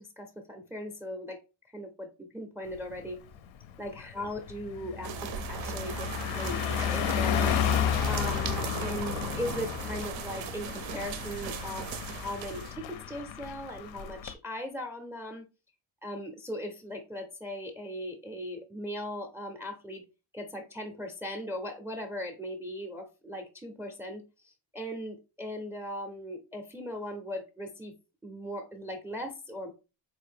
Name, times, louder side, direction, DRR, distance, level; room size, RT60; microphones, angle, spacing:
voice 1, 0.0-1.4 1.7-3.2 3.8-7.5 8.1-15.5 16.0-20.0 20.3-27.9 28.2-29.7, equal, 5° right, 6 dB, 0.4 m, -39 dB
Car passing by, 2.8-3.0 3.4-14.3, left 9 dB, 85° left, 0.5 m, -32 dB
sound 1, 5.0-12.7, right 9 dB, 90° right, 0.5 m, -38 dB
4.0 x 2.6 x 3.3 m, 0.30 s
cardioid pair, 150°, 45 cm